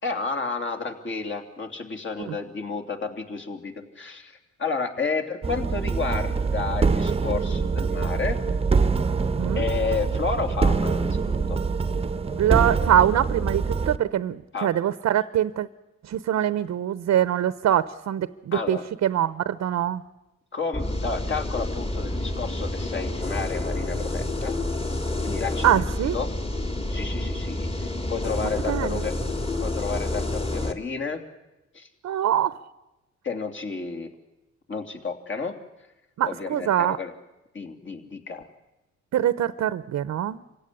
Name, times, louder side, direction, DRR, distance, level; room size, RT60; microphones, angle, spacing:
voice 1, 0.0-8.4 9.5-11.6 14.5-14.7 18.5-18.8 20.5-24.5 25.2-25.7 26.1-26.3 26.9-29.2 29.6-31.2 31.7-31.9 33.2-34.1 34.7-35.6 36.2-37.1 37.5-38.5, left 4 dB, 40° left, 5 dB, 3.1 m, -31 dB
sound 1, 5.4-14.0, right 4 dB, 20° right, 1.0 m, -24 dB
voice 2, 12.4-15.7 16.1-20.0 25.6-26.2 28.7-29.0 32.0-32.5 36.2-37.0 39.1-40.4, right 11 dB, 60° right, 14 dB, 0.8 m, -23 dB
sound 2, 20.7-30.7, left 2 dB, 20° left, 2.4 m, -29 dB
27.5 x 16.5 x 9.9 m, 0.99 s
cardioid pair, 90°, 30 cm